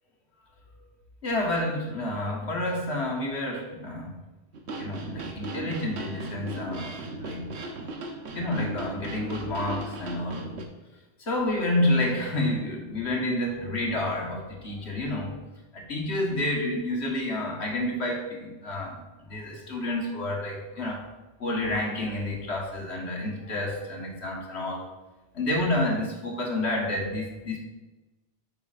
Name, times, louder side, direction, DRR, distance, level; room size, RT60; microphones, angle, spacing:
voice 1, 1.2-4.1 4.8-6.9 7.2-7.5 8.3-10.5 11.3-15.4 15.7-21.0 21.4-24.8 25.3-27.6, left 1 dB, 90° left, -1 dB, 1.7 m, -29 dB
sound 1, 4.5-10.6, right 2 dB, 85° right, 1.1 m, -37 dB
9.6 x 6.5 x 2.5 m, 1.1 s
omnidirectional pair, 1.1 m